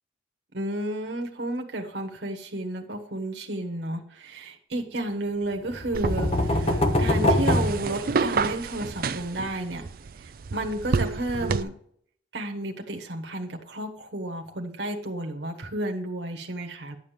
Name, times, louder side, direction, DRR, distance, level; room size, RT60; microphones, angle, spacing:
voice 1, 0.5-9.8 10.2-11.7 12.3-17.0, right 1 dB, 75° right, 2 dB, 1.3 m, -32 dB
sound 1, 5.7-8.6, left 1 dB, 35° left, 1.0 m, -24 dB
sound 2, 5.9-11.6, right 4 dB, 50° right, 0.4 m, -30 dB
11.0 x 7.4 x 3.4 m, 0.63 s
head